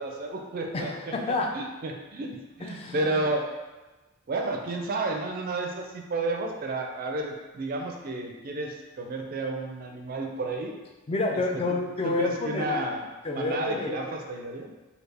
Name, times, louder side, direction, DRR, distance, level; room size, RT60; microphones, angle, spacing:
voice 1, 0.0-1.1 1.5-3.5 4.3-10.7 11.5-11.6 12.0-13.0 13.3-14.7, right 2 dB, 45° right, 2 dB, 0.4 m, -31 dB
voice 2, 0.7-1.5 2.6-3.3 11.1-12.8 13.2-14.1, left 3 dB, 25° left, 1 dB, 0.3 m, -29 dB
3.3 x 2.3 x 3.4 m, 1.2 s
head